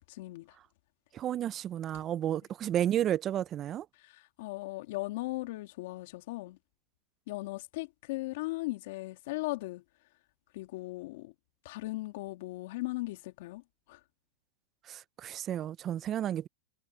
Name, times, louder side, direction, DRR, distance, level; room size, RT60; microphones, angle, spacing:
voice 1, 0.1-0.6 4.0-6.6 7.3-9.8 10.5-11.3 11.6-13.6 13.9-14.0, left 20 dB, 60° left, 2.3 m, -38 dB
voice 2, 1.1-3.9 14.9-16.5, right 11 dB, 30° right, 0.6 m, -32 dB
hypercardioid pair, 120°, 0 cm